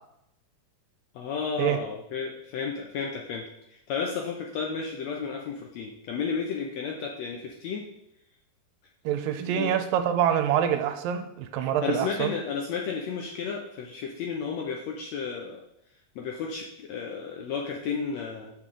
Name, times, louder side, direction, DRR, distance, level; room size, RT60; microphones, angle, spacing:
voice 1, 1.1-7.9 9.5-9.8 11.8-15.6 16.1-18.5, left 5 dB, 75° left, 0 dB, 1.6 m, -32 dB
voice 2, 9.1-12.3, right 10 dB, 90° right, 8 dB, 2.4 m, -26 dB
6.8 x 6.0 x 3.7 m, 0.78 s
omnidirectional pair, 3.9 m